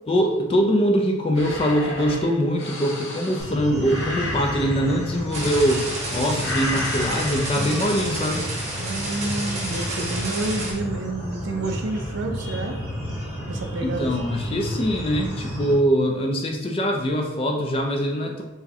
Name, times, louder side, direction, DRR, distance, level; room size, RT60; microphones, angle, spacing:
voice 1, 0.1-8.5 13.8-18.4, equal, 25° left, 2 dB, 0.3 m, -23 dB
sound 1, 1.3-6.1 6.4-7.6, left 2 dB, 65° left, 0.8 m, -32 dB
sound 2, 3.4-15.7, equal, 5° right, 1.1 m, -32 dB
sound 3, 5.3-10.7, right 1 dB, 35° right, 1.0 m, -31 dB
voice 2, 7.6-7.9 8.8-12.8 13.5-14.3, right 2 dB, 60° right, 4 dB, 0.4 m, -29 dB
4.5 x 2.1 x 2.7 m, 1.0 s
head